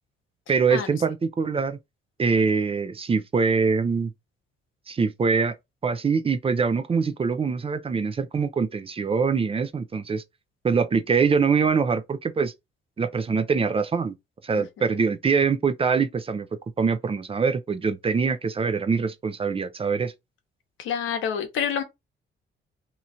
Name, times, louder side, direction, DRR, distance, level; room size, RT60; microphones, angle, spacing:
voice 1, 0.5-1.8 2.2-4.1 4.9-5.6 5.8-10.2 10.6-12.5 13.0-14.1 14.4-16.5 16.8-20.1, right 5 dB, 30° right, 0.5 m, -23 dB
voice 2, 14.5-14.9 20.8-21.8, left 8 dB, 80° left, 0.9 m, -28 dB
2.9 x 2.4 x 4.1 m
cardioid pair, 90°, 20 cm